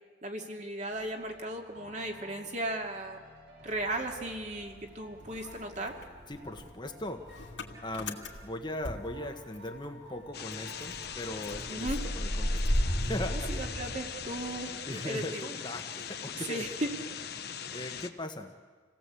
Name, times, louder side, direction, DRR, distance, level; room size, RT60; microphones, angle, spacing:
voice 1, 0.2-3.2 3.6-6.0 11.7-12.0 13.3-15.5 16.5-16.9, right 1 dB, 40° right, 2 dB, 2.4 m, -36 dB
sound 1, 0.9-14.7, equal, 70° right, 5.6 m, -53 dB
Motor vehicle (road) / Engine starting, 3.7-4.9 5.2-9.9 10.2-10.3 10.5-14.6, equal, 70° left, 2.7 m, -35 dB
voice 2, 6.3-7.2 7.8-12.7 13.0-13.5 14.9-16.7 17.4-18.5, left 1 dB, 25° left, 5 dB, 1.4 m, -39 dB
sound 2, 10.3-18.1, left 8 dB, 55° left, 1.1 m, -41 dB
28.5 x 18.0 x 8.4 m, 1.5 s
head